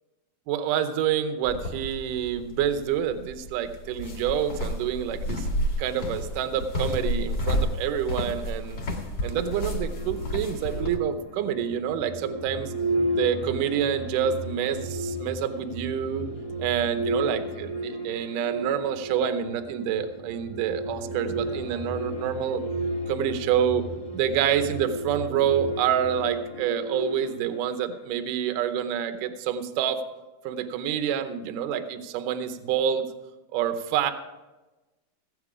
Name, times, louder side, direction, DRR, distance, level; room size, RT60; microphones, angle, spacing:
voice 1, 0.5-5.5 5.8-8.8 9.2-12.7 13.1-16.3 16.6-22.6 23.1-23.9 24.1-30.0 30.4-33.1 33.5-34.1, right 9 dB, 75° right, 9 dB, 2.0 m, -27 dB
sound 1, 1.4-11.0, equal, 40° left, 1.6 m, -31 dB
sound 2, 9.2-28.1, right 1 dB, 90° left, 1.0 m, -34 dB
16.5 x 9.1 x 4.9 m, 1.1 s
omnidirectional pair, 4.7 m